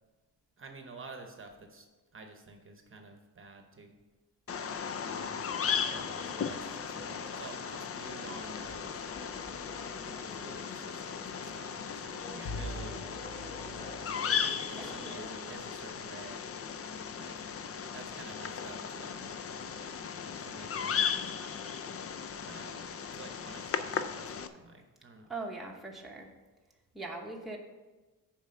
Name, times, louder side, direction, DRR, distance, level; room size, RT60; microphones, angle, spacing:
voice 1, 0.6-1.9 2.1-3.9 4.9-9.0 10.0-13.1 14.2-16.5 17.1-17.5 17.9-19.3 20.4-21.8 22.4-22.8 23.1-25.3, right 3 dB, 35° right, 4 dB, 0.9 m, -50 dB
Bird vocalization bird call bird song, 4.5-24.5, left 7 dB, 40° left, 0.4 m, -36 dB
sound 1, 5.9-15.5, left 1 dB, 25° left, 1.3 m, -50 dB
Bowed string instrument, 12.5-15.5, left 1 dB, 75° left, 1.0 m, -44 dB
voice 2, 25.3-26.3 26.9-27.6, right 3 dB, ahead, -1 dB, 0.9 m, -40 dB
7.4 x 4.8 x 6.4 m, 1.2 s
wide cardioid pair, 155°, 36 cm